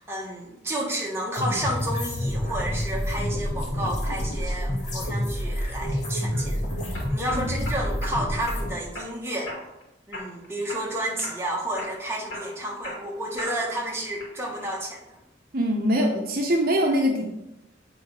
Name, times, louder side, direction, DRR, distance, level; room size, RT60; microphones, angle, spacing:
voice 1, 0.0-6.6 7.1-9.5 10.1-15.0, right 1 dB, 15° right, -2 dB, 1.3 m, -31 dB
sound 1, 1.3-8.7, equal, 40° left, 1.7 m, -28 dB
sound 2, 6.0-6.4 6.9-8.2 8.5-9.1 9.5-9.8 10.1-10.9 11.2-11.5 11.8-13.8 14.2-14.7, equal, 90° left, 2.5 m, -38 dB
voice 2, 15.5-17.3, equal, 50° right, 2 dB, 0.8 m, -23 dB
7.7 x 3.9 x 4.7 m, 0.90 s
head